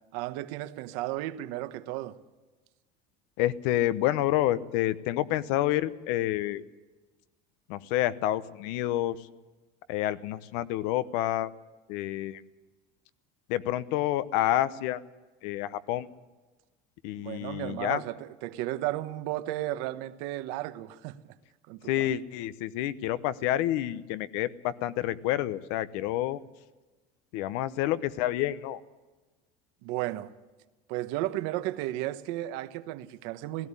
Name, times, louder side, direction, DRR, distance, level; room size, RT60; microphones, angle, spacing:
voice 1, 0.1-2.1 17.2-21.2 21.7-22.2 29.8-30.3 30.9-33.7, right 15 dB, 70° right, 1.1 m, -34 dB
voice 2, 3.4-6.6 7.7-9.3 9.9-11.5 11.9-12.4 13.5-15.0 15.4-16.1 17.0-18.0 21.9-26.4 27.3-28.8, left 13 dB, 75° left, 0.9 m, -28 dB
17.0 x 16.0 x 9.8 m
cardioid pair, 170°, 18 cm